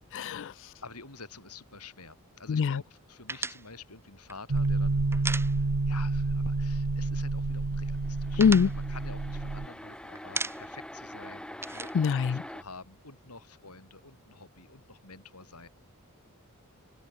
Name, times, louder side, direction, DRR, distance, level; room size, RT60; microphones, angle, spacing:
voice 1, 0.1-0.7 2.5-2.8 8.4-8.7 11.9-12.4, left 6 dB, 55° left, 0.4 m, -24 dB
voice 2, 0.8-15.7, left 4 dB, 90° left, 7.8 m, -49 dB
sound 1, 3.3-6.1 6.3-6.5 6.8-7.5 7.8-9.8 10.2-10.9 11.2-13.0, right 3 dB, 10° right, 3.0 m, -38 dB
sound 2, 4.5-9.7, right 3 dB, 75° right, 0.9 m, -29 dB
sound 3, 7.9-12.6, left 1 dB, 5° left, 4.2 m, -44 dB
open air
head